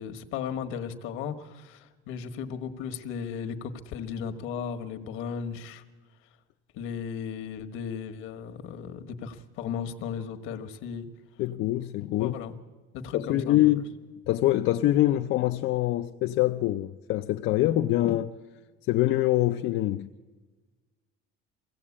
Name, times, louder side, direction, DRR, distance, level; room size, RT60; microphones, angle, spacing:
voice 1, 0.0-5.8 6.7-11.1 12.2-12.5 12.9-13.9, left 7 dB, 75° left, 1.5 m, -36 dB
voice 2, 11.4-12.3 13.1-13.9 14.3-18.3 18.9-20.1, left 15 dB, 60° left, 0.6 m, -24 dB
23.0 x 16.5 x 8.6 m
cardioid pair, 165°, 21 cm